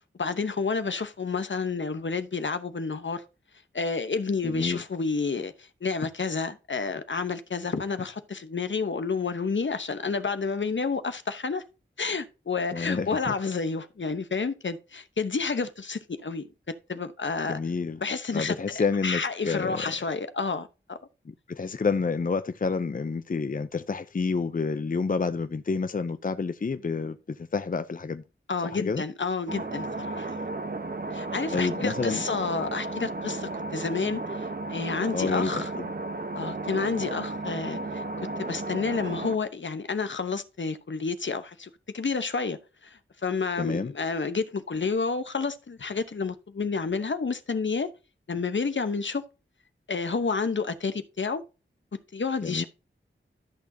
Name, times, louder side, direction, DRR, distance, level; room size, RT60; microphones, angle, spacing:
voice 1, 0.0-3.2 3.7-11.6 12.0-16.5 16.9-17.6 18.0-21.0 28.5-30.4 31.1-35.7 36.3-47.9 48.3-49.2 49.9-51.4 52.1-52.6, left 4 dB, 65° left, 1.0 m, -30 dB
voice 2, 4.4-4.8 12.7-13.4 17.5-18.0 18.3-19.9 21.3-28.2 28.6-29.0 31.5-32.2 35.1-35.9 43.6-43.9 52.4-52.6, left 4 dB, 40° left, 0.5 m, -29 dB
sound 1, 29.5-39.4, right 2 dB, 45° right, 1.0 m, -34 dB
13.5 x 6.3 x 2.7 m
wide cardioid pair, 60°, 21 cm